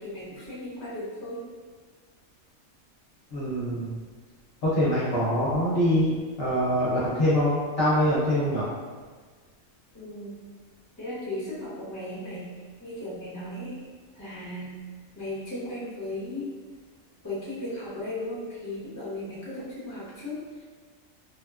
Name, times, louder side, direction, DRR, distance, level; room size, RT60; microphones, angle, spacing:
voice 1, 0.0-1.4 9.9-10.3 11.0-12.5 12.8-13.8 14.2-14.7 15.1-16.5 17.2-20.6, left 1 dB, 15° left, -9 dB, 0.8 m, -36 dB
voice 2, 3.3-3.9 4.6-6.1 6.4-8.6, equal, 55° left, -9 dB, 0.8 m, -24 dB
3.3 x 2.2 x 2.3 m, 1.5 s
omnidirectional pair, 1.4 m